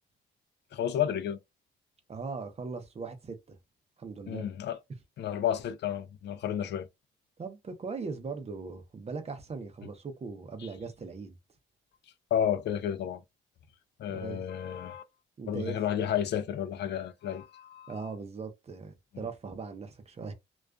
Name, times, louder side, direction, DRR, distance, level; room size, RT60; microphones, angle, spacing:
voice 1, 0.7-1.4 4.3-4.8 5.2-6.9 12.3-13.2 14.0-15.0 15.5-17.9, left 9 dB, 60° left, 0.4 m, -31 dB
voice 2, 2.1-3.6 4.0-4.4 7.4-11.3 14.1-14.4 15.4-15.8 17.9-20.3, right 4 dB, 30° right, 0.6 m, -39 dB
2.4 x 2.3 x 2.2 m
cardioid pair, 90°, 20 cm